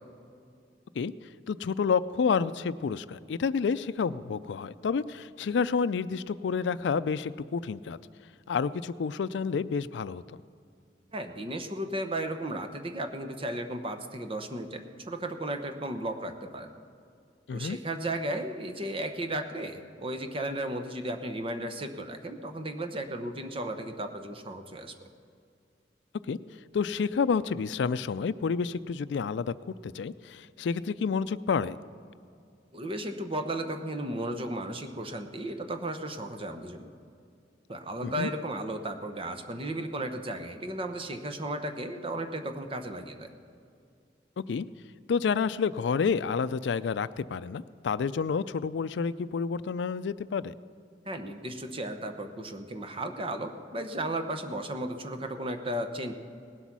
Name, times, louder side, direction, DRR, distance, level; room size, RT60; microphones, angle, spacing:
voice 1, 1.5-8.0 8.5-10.4 17.5-17.8 26.3-26.4 26.7-31.8 38.0-38.3 44.4-44.7 45.1-50.5, left 5 dB, 85° left, 15 dB, 0.4 m, -29 dB
voice 2, 11.1-16.7 17.5-24.9 32.7-36.9 37.7-43.3 51.0-56.1, right 1 dB, 30° right, 7 dB, 0.9 m, -35 dB
18.5 x 8.2 x 6.1 m, 2.4 s
head